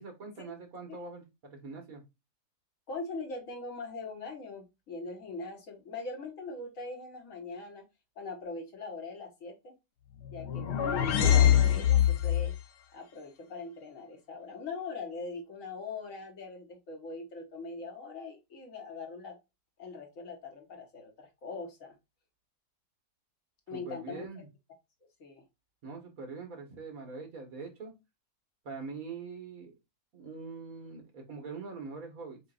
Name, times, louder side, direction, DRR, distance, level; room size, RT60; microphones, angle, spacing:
voice 1, 0.0-2.0 23.7-24.5 25.8-27.9 28.7-29.7 30.1-32.4, right 4 dB, 60° right, 3 dB, 1.9 m, -43 dB
voice 2, 2.9-7.8 8.2-9.7 10.3-12.5 12.9-19.4 19.8-21.9 23.7-24.4 25.2-25.4, left 3 dB, 55° left, 3 dB, 1.7 m, -41 dB
sound 1, 10.2-12.6, left 10 dB, 90° left, 1.3 m, -24 dB
7.7 x 2.7 x 2.4 m, 0.23 s
omnidirectional pair, 1.7 m